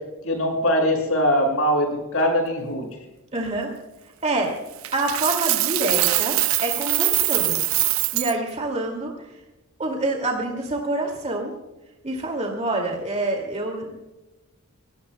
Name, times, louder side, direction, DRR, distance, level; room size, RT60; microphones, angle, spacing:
voice 1, 0.2-2.9, equal, 75° left, 1 dB, 6.1 m, -22 dB
voice 2, 3.3-3.7 4.2-4.6 4.9-7.6 8.1-9.1 9.8-11.5 12.0-14.0, right 2 dB, 30° right, 1 dB, 2.3 m, -26 dB
Coin (dropping), 4.8-8.3, right 17 dB, 65° right, 0.5 m, -23 dB
28.0 x 17.0 x 2.2 m, 1.1 s
head